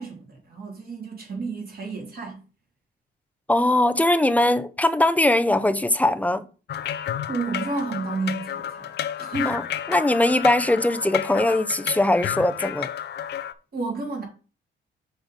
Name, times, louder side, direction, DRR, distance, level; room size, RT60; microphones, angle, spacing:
voice 1, 0.0-2.4 7.3-8.9 9.2-9.6 13.7-14.2, right 3 dB, 50° right, 3.3 m, -31 dB
voice 2, 3.5-6.4 9.5-9.6 9.9-12.9, left 1 dB, 5° left, 0.6 m, -21 dB
sound 1, 6.7-13.5, left 10 dB, 60° left, 0.5 m, -31 dB
6.2 x 3.8 x 5.2 m
cardioid pair, 90°, 20 cm